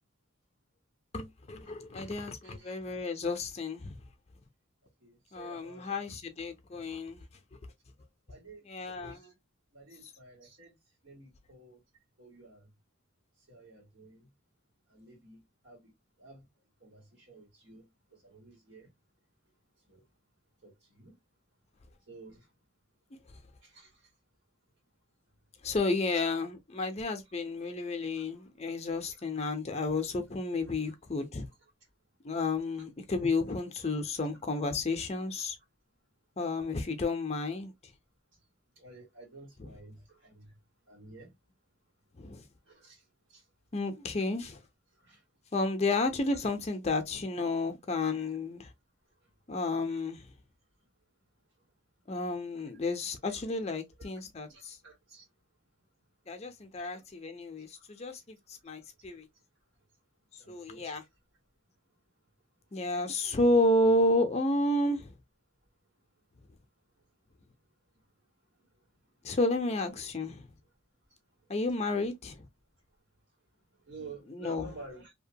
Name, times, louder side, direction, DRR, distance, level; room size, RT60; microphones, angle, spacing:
voice 1, 1.1-4.0 5.3-7.2 8.7-9.2 25.6-31.5 32.2-35.6 36.4-37.7 39.6-39.7 42.2-42.4 43.7-44.6 45.5-48.7 49.5-50.2 52.1-54.8 56.3-58.4 58.6-59.3 60.5-61.0 62.7-65.1 69.2-70.5 71.5-72.3 74.3-74.7, left 2 dB, 30° left, 0.5 m, -31 dB
voice 2, 2.0-2.7 5.0-6.1 8.3-9.3 9.7-10.7 11.0-11.8 12.2-12.6 13.5-14.2 14.9-15.9 16.2-16.4 16.8-17.8 18.2-18.9 19.9-20.0 20.6-20.7 21.0-21.2 22.1-22.4 23.7-23.9 26.1-26.2 38.8-39.9 40.2-40.5 40.9-41.3 42.7-43.0 43.3-43.4 45.0-45.2 54.5-55.2 56.8-56.9 60.4-60.9 72.0-72.1 73.9-75.1, right 2 dB, 80° right, 1.7 m, -51 dB
2.8 x 2.2 x 2.6 m
head